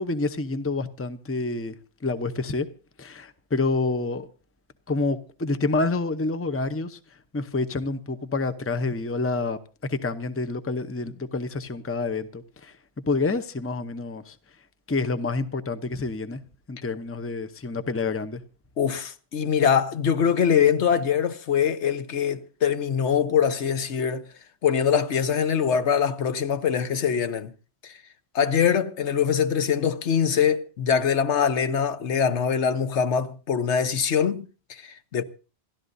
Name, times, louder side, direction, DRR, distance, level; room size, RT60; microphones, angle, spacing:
voice 1, 0.0-1.7 2.0-2.7 3.0-4.3 4.9-7.0 7.3-9.6 9.9-12.7 13.1-14.4 14.9-16.4 16.7-18.4, left 3 dB, 15° left, 0.7 m, -28 dB
voice 2, 18.8-24.3 24.6-27.5 27.8-28.0 28.3-35.2, left 7 dB, 75° left, 1.2 m, -23 dB
27.0 x 13.5 x 2.7 m
omnidirectional pair, 1.2 m